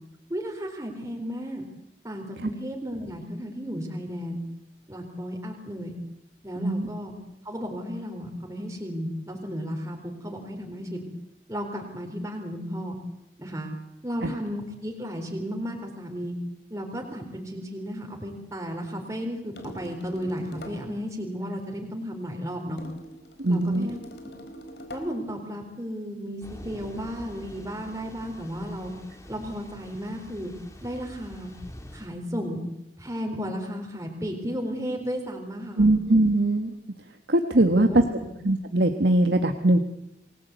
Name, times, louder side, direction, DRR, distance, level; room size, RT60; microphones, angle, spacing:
voice 1, 0.3-1.6 2.0-4.4 4.9-6.0 6.4-7.1 7.4-11.1 11.5-13.0 13.4-16.4 16.7-22.8 23.5-24.0 24.9-28.9 29.3-30.5 30.8-31.5 31.9-32.6 33.0-35.9 37.6-38.3, equal, 15° right, 1 dB, 3.9 m, -34 dB
sound 1, 19.6-20.9 22.8-25.2, equal, 70° left, 4.6 m, -43 dB
voice 2, 23.4-23.9 35.8-36.8 37.3-38.0 38.4-39.8, right 1 dB, 70° right, 6 dB, 1.6 m, -21 dB
Thunder / Rain, 26.4-32.1, equal, 15° left, 3.0 m, -46 dB
28.5 x 20.5 x 8.2 m, 0.87 s
head